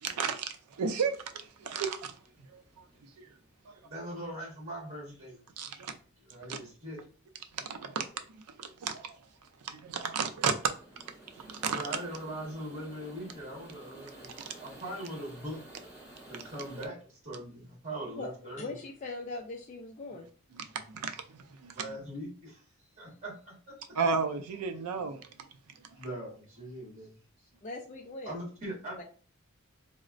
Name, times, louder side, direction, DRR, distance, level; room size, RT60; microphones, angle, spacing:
voice 1, 0.0-2.1 2.5-2.6 3.2-3.3 3.7-3.8 5.6-5.9 6.5-6.6 7.5-8.1 8.6-9.2 9.6-10.7 11.4-11.8 14.4-14.5 20.5-21.8 24.0-25.2, right 5 dB, 90° right, 0.4 m, -33 dB
sound 1, 1.1-16.9, right 1 dB, 10° right, 1.6 m, -54 dB
voice 2, 3.7-5.4 5.7-5.8 6.2-7.0 11.7-14.3 14.6-15.6 16.2-18.7 21.7-22.6 23.0-23.5 26.0-27.1 28.2-29.0, right 1 dB, 30° right, 1.3 m, -41 dB
voice 3, 18.6-20.3 27.6-28.4 29.0-29.1, left 3 dB, 30° left, 0.3 m, -40 dB
4.0 x 2.0 x 2.5 m
head